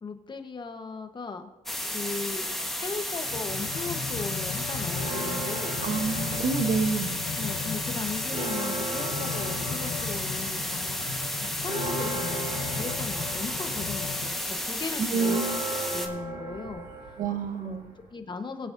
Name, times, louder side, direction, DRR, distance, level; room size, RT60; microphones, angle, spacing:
voice 1, 0.0-1.4 1.9-2.5 2.8-5.8 7.4-11.0 11.6-15.5 15.7-17.1 17.6-17.8 18.1-18.7, left 4 dB, 25° left, 7 dB, 1.1 m, -37 dB
sound 1, 1.7-16.1, left 1 dB, ahead, 1.3 m, -32 dB
sound 2, 3.2-14.5 15.1-15.2, left 7 dB, 60° left, 0.9 m, -37 dB
sound 3, 4.9-7.2 7.6-18.1, right 2 dB, 85° right, 3.9 m, -37 dB
voice 2, 5.8-7.2 15.0-15.6 17.2-18.0, right 5 dB, 55° right, 8 dB, 1.0 m, -28 dB
20.5 x 9.0 x 2.6 m, 1.0 s
cardioid pair, 110°, 17 cm